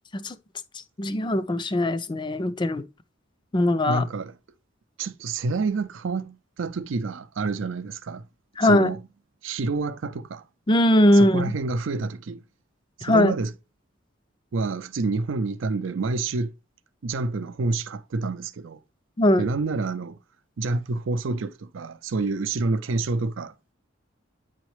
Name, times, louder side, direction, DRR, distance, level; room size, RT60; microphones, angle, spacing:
voice 1, 1.0-2.8 3.5-4.0 8.6-8.9 10.7-11.5 13.0-13.3 19.2-19.4, left 1 dB, 25° left, 0.4 m, -20 dB
voice 2, 3.9-4.3 5.0-8.2 8.6-9.0 9.4-10.4 11.1-12.4 13.0-13.5 14.5-16.5 17.0-18.8 19.4-20.2 20.6-23.7, right 3 dB, 75° right, 0.5 m, -28 dB
9.2 x 4.1 x 3.2 m
head